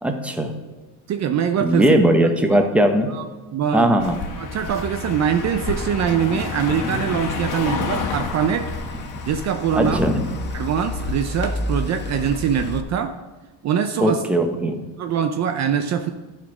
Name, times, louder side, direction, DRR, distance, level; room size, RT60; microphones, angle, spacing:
voice 1, 0.0-0.5 1.6-3.1 3.7-4.2 9.7-10.3 14.0-14.8, right 1 dB, 5° right, 4 dB, 1.0 m, -19 dB
voice 2, 1.1-1.9 2.5-2.7 3.1-3.9 4.4-8.7 9.2-10.0 10.5-13.2 13.6-14.2 15.0-16.1, right 8 dB, 45° right, 7 dB, 0.6 m, -23 dB
Car passing by, 4.0-11.5, left 5 dB, 55° left, 1.5 m, -30 dB
sound 1, 5.8-12.8, left 2 dB, 30° left, 0.8 m, -32 dB
11.5 x 4.3 x 6.1 m, 1.2 s
cardioid pair, 115°, 39 cm